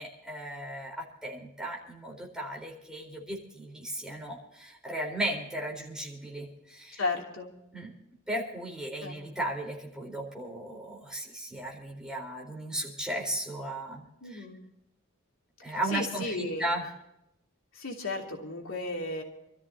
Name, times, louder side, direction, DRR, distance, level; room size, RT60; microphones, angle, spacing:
voice 1, 0.0-7.0 7.7-7.9 8.3-14.4 15.6-16.8, right 1 dB, 5° right, -1 dB, 4.2 m, -36 dB
voice 2, 7.0-7.5 9.0-9.2 14.2-14.6 15.6-16.7 17.7-19.2, left 3 dB, 70° left, 0 dB, 3.0 m, -34 dB
29.0 x 13.5 x 2.9 m, 0.85 s
head